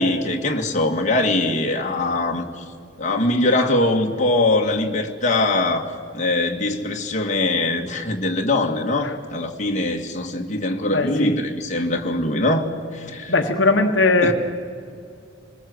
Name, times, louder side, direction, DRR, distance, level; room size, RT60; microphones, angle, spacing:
voice 1, 0.0-2.6 3.0-12.7 12.9-13.3 14.2-14.3, left 2 dB, 40° left, 1 dB, 2.1 m, -22 dB
voice 2, 10.9-11.3 13.3-14.3, left 3 dB, 70° left, 4 dB, 1.4 m, -19 dB
26.5 x 20.5 x 8.0 m, 2.4 s
head